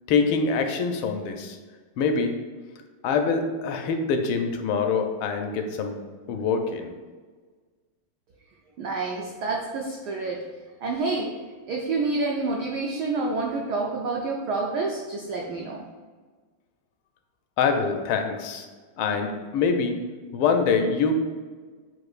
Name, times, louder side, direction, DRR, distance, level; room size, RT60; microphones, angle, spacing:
voice 1, 0.1-1.6 2.0-2.3 3.0-6.0 6.3-6.9 17.6-18.7 19.0-20.0 20.3-21.2, left 5 dB, 80° left, 5 dB, 1.4 m, -24 dB
voice 2, 8.8-10.4 10.8-11.3 11.7-15.8, right 3 dB, 85° right, 0 dB, 0.9 m, -28 dB
7.8 x 2.6 x 2.4 m, 1.4 s
omnidirectional pair, 2.3 m